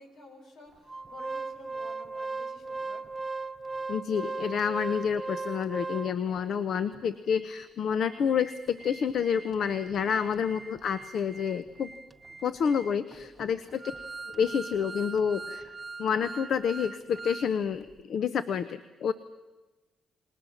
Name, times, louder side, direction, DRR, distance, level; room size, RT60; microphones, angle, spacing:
voice 1, 0.0-3.0 3.4-3.5 6.0-6.6 7.4-7.5 9.9-10.7 13.2-13.6, left 2 dB, 80° left, 2 dB, 6.2 m, -52 dB
Organ, 0.9-6.4 6.9-7.0 7.3-7.4 7.9-17.5 17.8-17.9, right 3 dB, 20° right, 0.7 m, -39 dB
voice 2, 3.9-11.9 12.4-13.8 14.3-15.7 16.0-19.1, left 7 dB, 60° left, 13 dB, 0.9 m, -29 dB
29.5 x 19.5 x 7.3 m, 1.1 s
cardioid pair, 90°, 0 cm